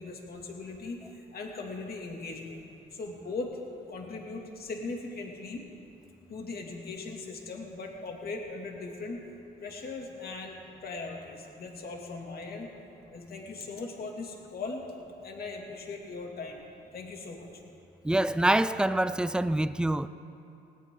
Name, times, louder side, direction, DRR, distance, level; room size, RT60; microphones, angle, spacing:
voice 1, 0.0-2.6 2.9-3.6 3.9-5.7 6.3-9.3 9.6-12.7 13.1-14.8 15.2-16.6 16.9-17.5, left 3 dB, 50° left, 2.6 m, -39 dB
voice 2, 18.0-20.1, right 1 dB, 5° right, 0.5 m, -25 dB
19.0 x 18.0 x 3.9 m
cardioid pair, 90°, 20 cm